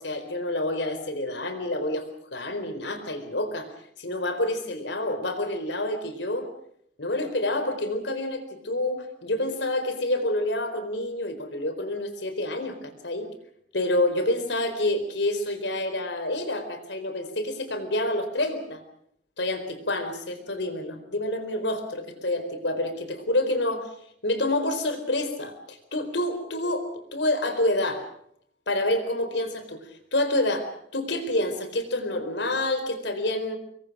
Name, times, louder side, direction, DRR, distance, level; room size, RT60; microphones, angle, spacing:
voice 1, 0.0-2.0 2.3-3.7 4.0-6.5 7.0-13.3 13.7-18.8 19.4-23.9 24.2-28.0 28.7-33.6, left 1 dB, 70° left, 9 dB, 4.3 m, -28 dB
26.5 x 22.0 x 6.2 m, 0.68 s
head